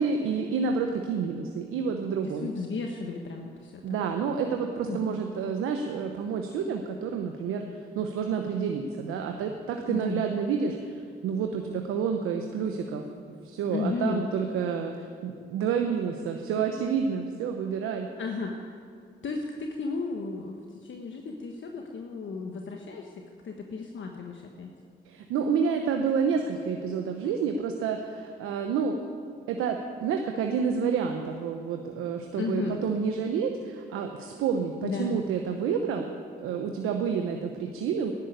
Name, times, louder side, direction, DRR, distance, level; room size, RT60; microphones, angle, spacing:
voice 1, 0.0-2.5 3.8-13.0 13.4-18.1 25.0-29.0 29.5-36.1 36.4-38.1, right 6 dB, 90° right, 4 dB, 0.9 m, -29 dB
voice 2, 2.4-4.3 4.8-5.2 9.8-10.2 13.7-14.2 18.2-18.7 19.2-24.7 32.3-32.8 34.8-35.2, left 4 dB, 65° left, 2 dB, 1.4 m, -34 dB
12.5 x 11.0 x 9.4 m, 2.2 s
supercardioid pair, 50°, 21 cm